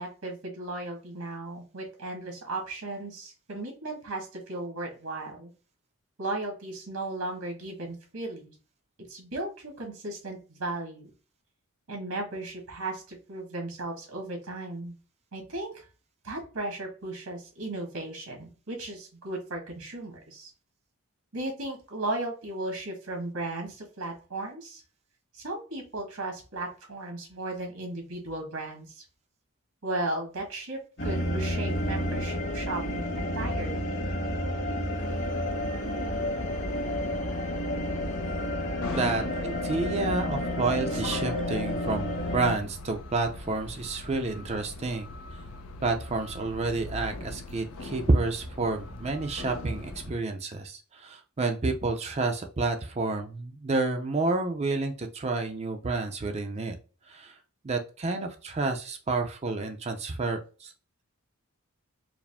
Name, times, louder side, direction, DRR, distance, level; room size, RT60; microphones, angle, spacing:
voice 1, 0.0-5.5 6.2-8.5 9.1-11.1 11.9-14.9 15.3-15.9 16.2-20.5 21.3-24.8 25.3-29.0 29.8-34.0 38.9-39.4 40.9-41.0 41.3-41.9, right 2 dB, 80° right, 2 dB, 1.5 m, -36 dB
sound 1, 31.0-42.6, left 1 dB, 55° left, 1.6 m, -30 dB
sound 2, 35.0-50.1, left 2 dB, 75° left, 0.6 m, -42 dB
voice 2, 38.9-45.1 45.8-56.8 57.1-57.3 57.6-60.7, right 3 dB, 30° right, 4 dB, 0.5 m, -29 dB
4.8 x 2.1 x 3.4 m, 0.35 s
head